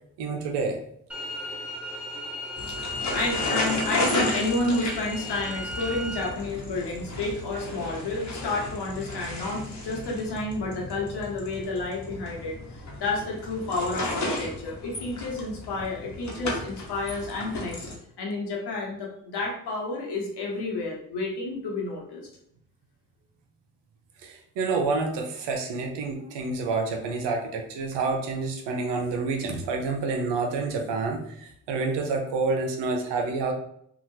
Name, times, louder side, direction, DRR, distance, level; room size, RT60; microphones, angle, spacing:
voice 1, 0.2-0.8 24.2-33.5, right 3 dB, 70° right, 2 dB, 0.7 m, -28 dB
sound 1, 1.1-6.3, left 1 dB, 5° right, 0.8 m, -35 dB
sound 2, 2.6-18.0, left 2 dB, 40° left, 1.1 m, -34 dB
voice 2, 2.7-17.8 18.2-22.3, left 2 dB, 65° left, -1 dB, 1.1 m, -30 dB
2.8 x 2.5 x 2.7 m, 0.70 s
hypercardioid pair, 40°, 43 cm